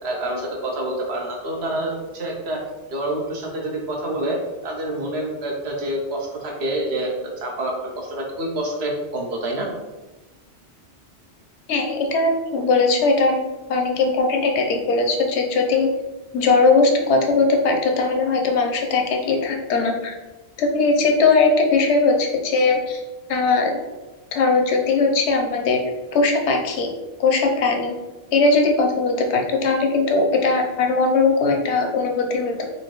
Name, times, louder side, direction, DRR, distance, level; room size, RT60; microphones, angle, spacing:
voice 1, 0.0-2.6 2.9-4.4 4.6-7.1 7.4-9.7, right 1 dB, 70° right, 0 dB, 1.1 m, -27 dB
voice 2, 11.7-15.9 16.3-20.2 20.6-23.0 23.3-23.8 24.3-25.8 26.1-26.9 27.2-27.9 28.3-32.6, left 3 dB, 80° left, 3 dB, 0.9 m, -19 dB
4.2 x 2.6 x 3.0 m, 1.1 s
omnidirectional pair, 1.1 m